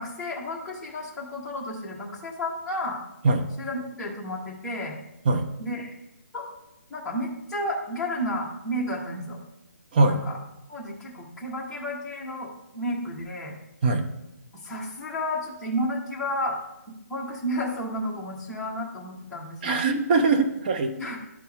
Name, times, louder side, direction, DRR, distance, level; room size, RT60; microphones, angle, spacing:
voice 1, 0.0-3.0 3.6-4.9 5.6-5.9 6.3-6.5 6.9-9.4 10.0-10.4 10.7-13.5 14.6-16.6 17.1-19.8 21.0-21.2, equal, 10° left, -5 dB, 1.4 m, -32 dB
voice 2, 19.6-20.9, right 3 dB, 30° right, 6 dB, 0.9 m, -21 dB
12.5 x 4.5 x 3.6 m, 0.90 s
hypercardioid pair, 160°, 9 cm